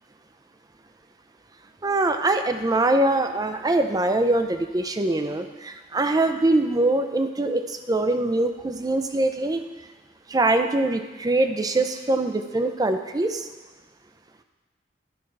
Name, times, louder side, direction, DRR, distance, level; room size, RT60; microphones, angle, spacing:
voice 1, 1.8-9.6 10.3-13.5, right 2 dB, 20° right, 7 dB, 0.5 m, -23 dB
11.0 x 4.4 x 5.3 m, 1.2 s
head